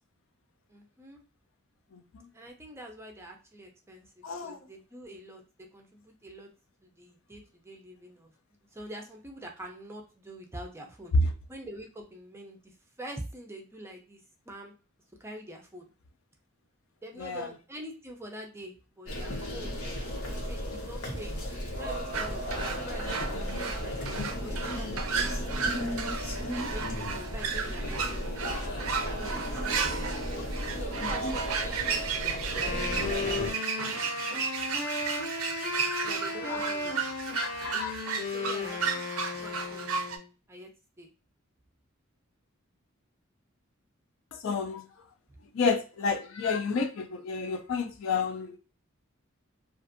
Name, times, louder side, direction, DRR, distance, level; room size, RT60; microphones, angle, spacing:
voice 1, 0.7-1.2 2.3-5.4 5.7-6.5 6.8-11.1 11.5-14.2 14.5-14.7 15.2-15.9 17.0-25.6 26.5-30.0 30.7-32.9 33.2-33.4 36.0-37.2 38.2-39.1 39.3-40.0 40.5-40.7 41.0-41.1 45.3-45.4, right 1 dB, 10° right, 0.4 m, -45 dB
voice 2, 1.9-2.3 4.2-4.6 17.2-17.5 31.0-31.3 34.4-35.2 35.8-36.1 36.5-36.6 37.3-38.1 44.3-44.9 45.5-48.6, left 5 dB, 65° left, 0.4 m, -32 dB
sound 1, 19.1-33.5, equal, 85° left, 0.9 m, -34 dB
sound 2, 22.1-40.2, right 6 dB, 85° right, 0.5 m, -34 dB
Wind instrument woodwind instrument, 32.5-40.2, left 3 dB, 45° left, 0.8 m, -35 dB
2.5 x 2.4 x 2.5 m
head